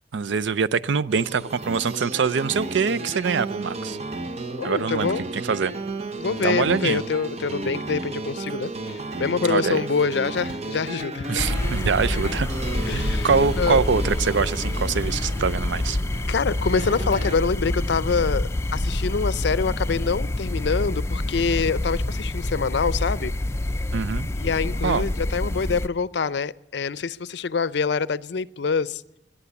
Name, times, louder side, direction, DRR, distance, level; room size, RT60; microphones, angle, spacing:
voice 1, 0.1-4.0 4.6-5.7 6.4-7.0 9.5-9.8 11.3-12.5 12.9-16.0 23.9-24.3 24.8-25.1, right 5 dB, 80° right, 18 dB, 0.5 m, -24 dB
sound 1, 1.1-17.4, right 2 dB, 35° right, 0.9 m, -33 dB
voice 2, 4.6-5.2 6.2-11.4 12.9-13.8 16.3-23.3 24.4-29.0, left 5 dB, 70° left, 18 dB, 0.5 m, -25 dB
sound 2, 11.4-25.9, left 1 dB, 15° left, 0.5 m, -27 dB
18.0 x 11.0 x 7.0 m, 0.88 s
head